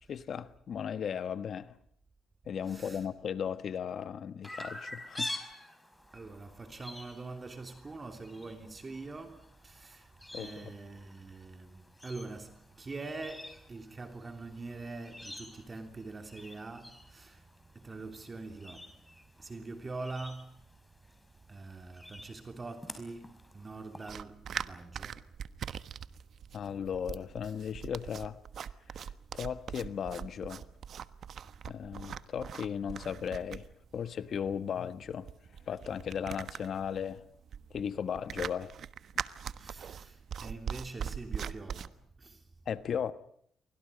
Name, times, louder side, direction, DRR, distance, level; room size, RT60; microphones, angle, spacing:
voice 1, 0.1-1.8 2.4-5.3 10.3-10.7 26.5-28.4 29.0-30.7 31.7-33.7 33.9-35.3 35.7-37.2 37.7-38.7 39.1-39.2 42.6-43.1, left 8 dB, 60° left, 1.4 m, -36 dB
voice 2, 2.7-3.1 6.1-17.5 17.7-19.1 19.4-20.6 21.5-25.4 39.5-42.5, right 3 dB, 30° right, 3.1 m, -44 dB
Chirp tweet, 4.4-24.1, left 1 dB, 10° left, 5.0 m, -48 dB
sound 1, 24.1-41.9, right 8 dB, 60° right, 1.2 m, -41 dB
30.0 x 24.5 x 5.2 m
cardioid pair, 90°, 0 cm